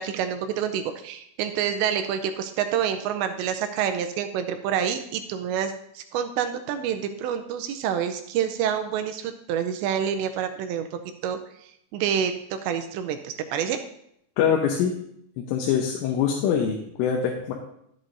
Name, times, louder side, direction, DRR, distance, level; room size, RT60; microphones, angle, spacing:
voice 1, 0.0-11.4 11.9-13.8, right 8 dB, 80° right, 7 dB, 2.6 m, -27 dB
voice 2, 14.4-14.9 15.4-17.5, left 7 dB, 90° left, 0 dB, 3.4 m, -24 dB
12.5 x 8.5 x 2.6 m, 0.74 s
omnidirectional pair, 5.5 m